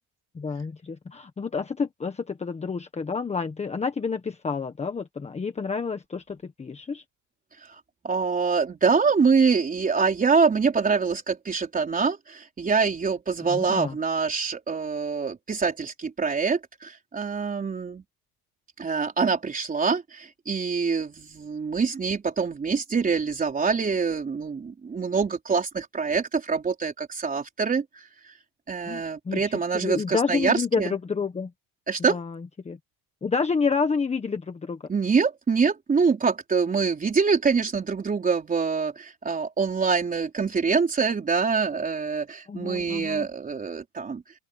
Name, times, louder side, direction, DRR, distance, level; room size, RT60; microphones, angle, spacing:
voice 1, 0.3-7.0 13.5-13.9 28.9-31.5 32.1-32.8 33.2-34.8 42.5-43.3, left 5 dB, 15° left, 1.4 m, -29 dB
voice 2, 8.0-18.0 18.8-28.4 28.7-30.9 31.9-32.2 34.9-44.2, right 5 dB, 20° right, 4.3 m, -25 dB
open air
cardioid pair, 160°, 39 cm